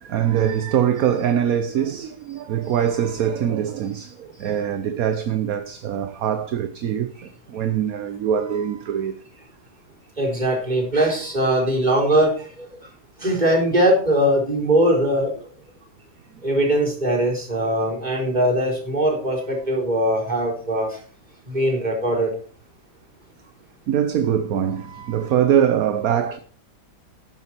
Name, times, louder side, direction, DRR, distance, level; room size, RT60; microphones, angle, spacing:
voice 1, 0.0-9.2 23.9-26.4, right 9 dB, 60° right, 1.2 m, -23 dB
voice 2, 10.2-12.7 13.2-15.3 16.4-21.0 21.5-22.3, right 1 dB, 25° right, 4.5 m, -21 dB
12.0 x 10.0 x 4.5 m
omnidirectional pair, 1.8 m